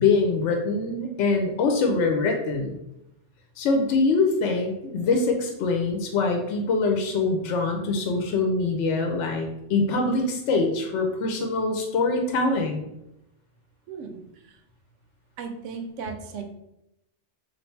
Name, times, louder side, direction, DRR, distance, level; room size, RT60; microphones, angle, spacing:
voice 1, 0.0-2.8 3.6-12.9, left 3 dB, 75° left, 3 dB, 0.9 m, -24 dB
voice 2, 13.9-14.6 15.4-16.4, right 5 dB, 80° right, 6 dB, 0.9 m, -36 dB
3.2 x 2.6 x 4.3 m, 0.86 s
omnidirectional pair, 1.3 m